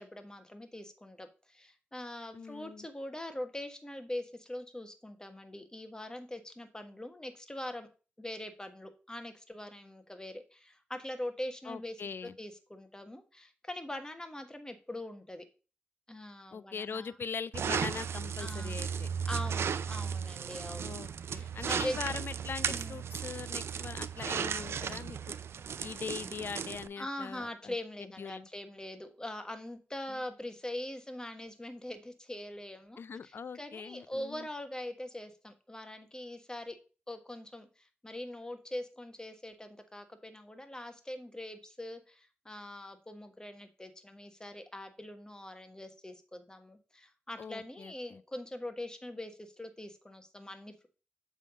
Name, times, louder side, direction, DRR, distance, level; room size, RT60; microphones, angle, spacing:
voice 1, 0.0-7.9 8.2-12.0 12.2-15.5 16.1-17.1 18.4-18.8 19.3-20.9 21.3-22.0 22.7-23.0 27.0-36.8 37.1-50.9, left 1 dB, 15° left, 1.4 m, -42 dB
voice 2, 2.3-2.9 11.6-12.3 16.5-19.1 20.8-25.3 25.8-28.5 30.1-30.2 33.0-34.5 47.4-48.2, left 6 dB, 55° left, 0.4 m, -41 dB
sound 1, 17.5-26.9, right 7 dB, 70° right, 0.4 m, -35 dB
7.6 x 3.6 x 4.9 m
cardioid pair, 50°, 4 cm